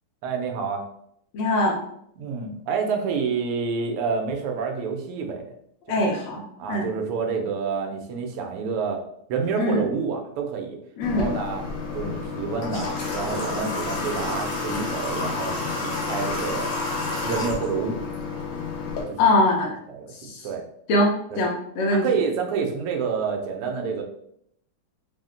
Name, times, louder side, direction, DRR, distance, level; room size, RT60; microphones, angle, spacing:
voice 1, 0.2-0.8 2.2-5.4 5.9-6.1 6.6-9.0 9.3-10.8 11.1-11.6 11.9-16.7 17.2-18.0 19.1-19.3 19.9-20.6 21.3-21.4 21.9-24.0, right 5 dB, 85° right, 3 dB, 1.6 m, -28 dB
voice 2, 1.3-1.8 5.9-6.4 6.7-6.9 9.6-9.8 11.0-11.3 19.2-19.8 20.2-20.5 20.9-22.1, left 2 dB, 75° left, 0 dB, 1.7 m, -22 dB
Water / Water tap faucet, 11.0-19.0, left 3 dB, 55° left, 1.3 m, -29 dB
4.4 x 2.1 x 3.7 m, 0.72 s
omnidirectional pair, 2.4 m